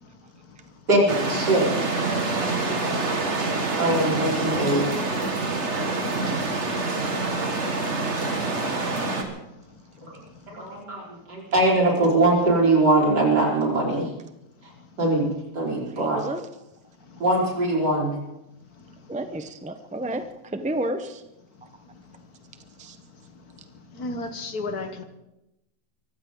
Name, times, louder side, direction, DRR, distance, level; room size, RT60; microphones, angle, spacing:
voice 1, 0.9-1.7 3.8-4.9 10.0-10.1 10.5-11.0 11.3-14.1 15.0-15.2 15.5-16.2 17.2-18.1, right 2 dB, 70° right, -3 dB, 5.1 m, -21 dB
sound 1, 1.1-9.2, right 3 dB, 40° right, 2.1 m, -26 dB
voice 2, 16.0-16.5 19.1-21.2 22.8-23.0, right 1 dB, 10° right, 8 dB, 0.4 m, -31 dB
voice 3, 23.9-25.0, left 2 dB, 60° left, 8 dB, 1.8 m, -32 dB
23.5 x 15.5 x 3.8 m, 0.90 s
omnidirectional pair, 1.9 m